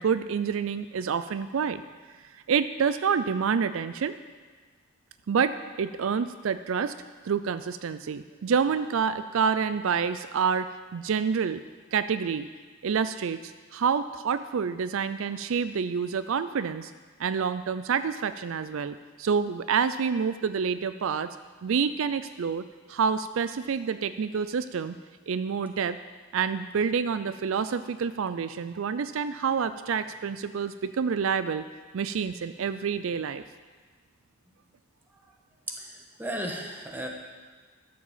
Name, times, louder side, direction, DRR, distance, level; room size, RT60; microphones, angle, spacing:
voice 1, 0.0-1.8 2.3-4.2 5.3-6.9 7.2-11.6 11.9-12.5 12.8-16.9 17.2-21.3 21.6-22.6 22.9-25.0 25.3-26.0 26.3-31.6 31.9-33.4, right 6 dB, 70° right, 12 dB, 0.4 m, -28 dB
voice 2, 35.7-37.1, right 1 dB, 10° right, 1 dB, 1.3 m, -35 dB
12.5 x 7.6 x 7.2 m, 1.4 s
head